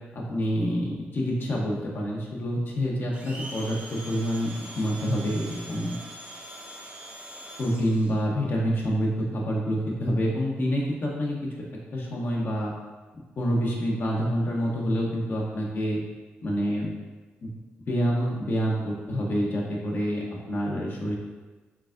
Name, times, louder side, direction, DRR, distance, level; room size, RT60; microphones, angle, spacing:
voice 1, 0.1-6.0 7.6-11.5 11.9-12.7 13.4-16.0 16.4-16.9 17.4-17.5 17.9-21.2, equal, 55° left, -3 dB, 0.8 m, -27 dB
Domestic sounds home sounds, 3.1-8.2, right 1 dB, 35° right, 0.9 m, -42 dB
4.7 x 3.3 x 2.5 m, 1.3 s
cardioid pair, 85°, 4 cm